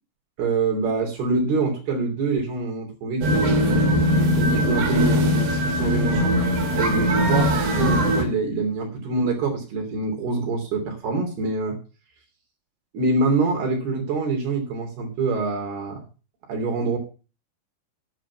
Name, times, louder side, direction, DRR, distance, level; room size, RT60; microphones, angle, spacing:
voice 1, 0.4-6.3 6.7-11.8 12.9-16.0 16.5-17.0, right 3 dB, 70° right, 1 dB, 4.9 m, -25 dB
sound 1, 3.2-8.2, equal, 50° right, 3.8 m, -20 dB
10.5 x 8.3 x 7.2 m, 0.34 s
omnidirectional pair, 4.7 m